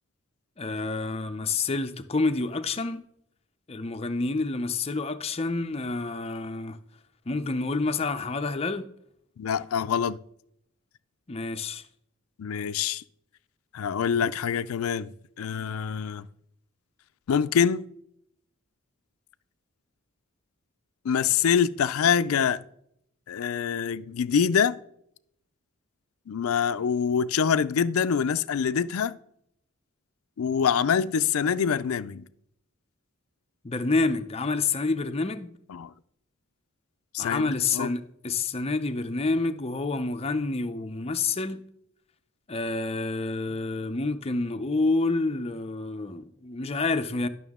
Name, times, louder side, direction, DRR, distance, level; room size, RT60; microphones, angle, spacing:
voice 1, 0.6-3.0 3.7-6.8 7.3-8.8 11.3-11.8 33.6-35.5 37.2-41.6 42.5-47.3, left 3 dB, 30° left, 0.5 m, -28 dB
voice 2, 9.4-10.2 12.4-13.0 13.7-16.3 17.3-17.9 21.0-22.6 23.3-24.8 26.3-29.2 30.4-32.2 35.7-35.9 37.1-37.9, left 7 dB, 85° left, 0.4 m, -25 dB
11.0 x 6.1 x 3.6 m
head